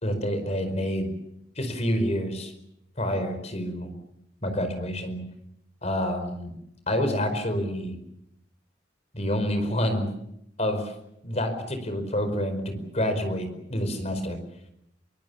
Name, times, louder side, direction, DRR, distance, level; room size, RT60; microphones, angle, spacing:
voice 1, 0.0-1.1 1.6-2.5 3.0-3.9 4.4-5.2 5.8-6.5 6.9-8.0 9.1-10.1 10.6-10.9 11.2-14.4, equal, 40° left, 8 dB, 5.0 m, -28 dB
24.5 x 24.0 x 7.2 m, 0.79 s
head